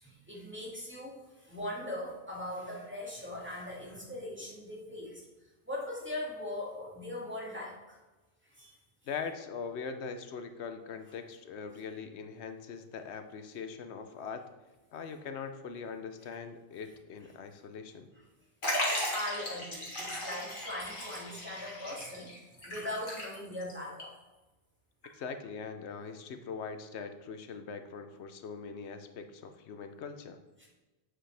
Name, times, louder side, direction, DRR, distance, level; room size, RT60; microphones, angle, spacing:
voice 1, 0.0-5.2 5.7-8.0 8.4-8.8 19.1-24.1 30.6-30.7, left 1 dB, 10° right, -4 dB, 2.1 m, -40 dB
voice 2, 9.0-14.5 14.9-18.1 25.1-30.4, left 5 dB, 90° left, 8 dB, 1.0 m, -41 dB
Liquid, 18.6-23.7 24.0-24.1 25.0-25.1, left 1 dB, 50° left, 2.0 m, -36 dB
8.3 x 7.5 x 3.4 m, 1.1 s
omnidirectional pair, 1.1 m